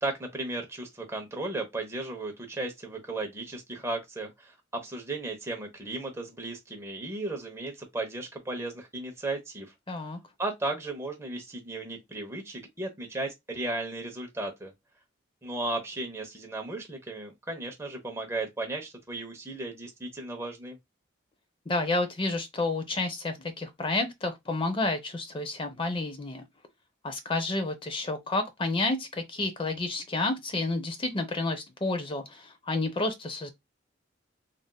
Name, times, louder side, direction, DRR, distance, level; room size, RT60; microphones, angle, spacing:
voice 1, 0.0-9.7 10.4-14.7 15.4-20.8, right 2 dB, 15° right, 0.9 m, -35 dB
voice 2, 9.9-10.2 21.7-26.4 27.0-33.5, left 2 dB, 25° left, 0.5 m, -30 dB
3.4 x 2.6 x 2.2 m
head